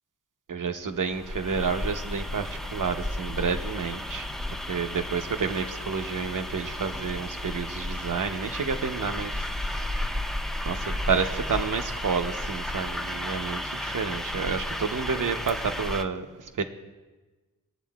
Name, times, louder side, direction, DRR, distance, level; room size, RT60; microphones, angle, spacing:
voice 1, 0.5-10.1 10.6-16.6, right 5 dB, 60° right, 0.9 m, -30 dB
sound 1, 1.0-16.0, left 1 dB, ahead, 0.6 m, -33 dB
22.0 x 8.3 x 2.4 m
wide cardioid pair, 100°, 36 cm